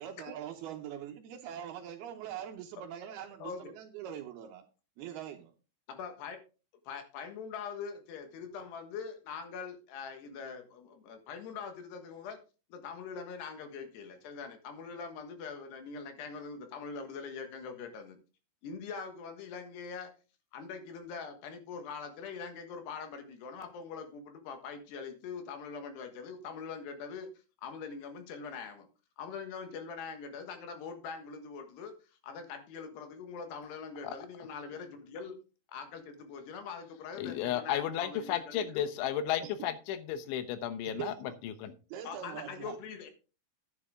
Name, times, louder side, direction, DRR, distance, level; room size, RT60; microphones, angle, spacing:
voice 1, 0.0-4.6 5.0-5.5 39.4-39.7 40.9-41.4 41.9-42.8, right 10 dB, 75° right, 2.4 m, -43 dB
voice 2, 3.4-3.8 5.9-6.4 6.9-12.4 12.7-18.2 18.6-20.1 20.5-27.3 27.6-28.9 29.2-31.9 32.2-35.4 35.7-38.9 42.1-43.1, left 5 dB, 70° left, 3.4 m, -43 dB
voice 3, 37.2-41.1 41.4-41.7, left 10 dB, 90° left, 3.4 m, -33 dB
11.0 x 9.8 x 3.6 m
omnidirectional pair, 5.2 m